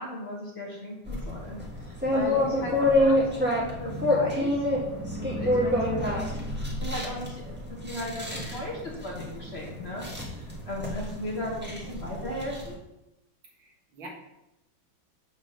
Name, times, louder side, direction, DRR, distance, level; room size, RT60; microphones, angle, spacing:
voice 1, 0.0-4.6 5.2-6.3 6.7-12.8, left 1 dB, 35° left, -2 dB, 1.4 m, -37 dB
sound 1, 1.1-12.7, left 1 dB, 5° right, 1.2 m, -28 dB
voice 2, 13.6-14.1, right 2 dB, 75° right, -2 dB, 2.4 m, -46 dB
7.3 x 3.8 x 6.5 m, 0.92 s
omnidirectional pair, 2.2 m